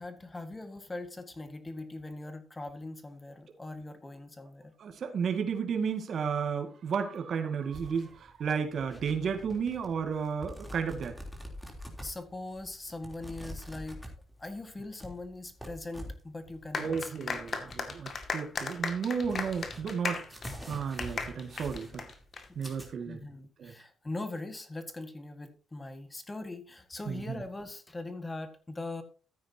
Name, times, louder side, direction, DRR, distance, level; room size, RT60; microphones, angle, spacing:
voice 1, 0.0-4.7 12.0-14.0 14.4-17.5 23.0-29.0, left 2 dB, 20° left, 9 dB, 1.8 m, -41 dB
voice 2, 4.8-11.1 16.8-20.2 20.7-22.0 22.6-23.2 23.6-23.7 27.1-27.4, right 6 dB, 55° right, 4 dB, 2.0 m, -33 dB
sound 1, 7.7-22.9, equal, 5° left, 3.5 m, -46 dB
sound 2, 16.7-22.7, left 5 dB, 45° left, 2.2 m, -36 dB
14.0 x 9.5 x 2.9 m, 0.37 s
cardioid pair, 90°, 0 cm